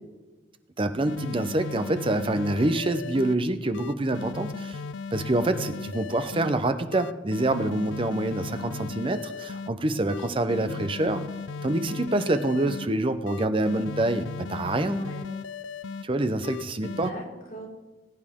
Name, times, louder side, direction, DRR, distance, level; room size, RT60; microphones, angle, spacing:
voice 1, 0.8-4.8 5.1-11.2 11.6-15.0 16.0-17.1, right 2 dB, 30° right, 10 dB, 0.7 m, -26 dB
sound 1, 1.1-3.4 3.7-6.5 6.9-9.7 10.1-12.9 13.3-16.0 16.4-17.1, left 5 dB, 85° left, 0.4 m, -36 dB
voice 2, 9.9-10.9 14.8-15.4 16.8-17.7, equal, 50° left, -3 dB, 3.5 m, -39 dB
20.5 x 9.0 x 3.7 m, 1.3 s
head